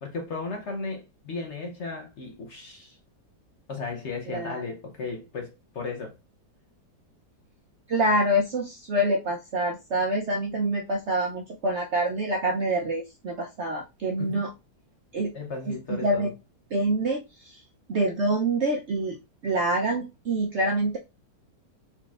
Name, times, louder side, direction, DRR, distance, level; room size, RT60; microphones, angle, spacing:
voice 1, 0.0-3.0 3.7-6.1 14.2-14.4 15.3-16.3, left 4 dB, 55° left, 0.8 m, -35 dB
voice 2, 4.3-4.6 7.9-14.5 15.1-15.3 15.7-16.3 16.7-17.6 17.9-19.2 19.4-21.0, right 1 dB, 65° right, 0.7 m, -26 dB
4.2 x 4.2 x 2.3 m
omnidirectional pair, 1.8 m